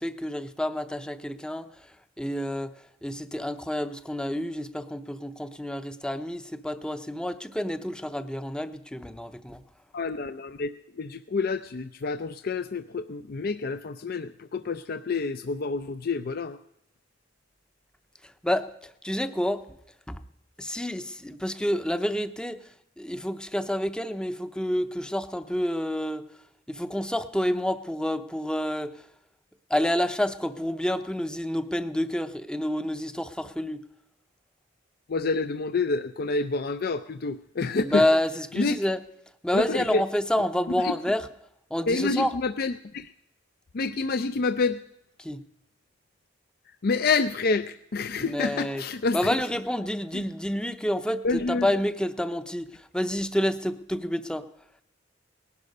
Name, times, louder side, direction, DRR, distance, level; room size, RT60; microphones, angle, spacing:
voice 1, 0.0-1.7 2.2-2.7 3.0-9.6 18.4-19.7 20.1-20.2 20.6-22.6 23.0-26.3 26.7-29.0 29.7-33.8 37.8-39.0 39.4-41.3 41.7-42.3 45.2-45.4 48.2-48.8 49.1-54.5, left 1 dB, 5° left, 11 dB, 0.7 m, -28 dB
voice 2, 9.9-10.7 11.0-16.6 35.1-38.0 38.6-38.8 39.5-40.0 40.8-40.9 41.9-43.1 43.7-44.8 46.8-49.3 50.1-50.3 51.2-51.7, left 4 dB, 55° left, 10 dB, 0.5 m, -28 dB
19.0 x 11.5 x 5.4 m, 0.83 s
head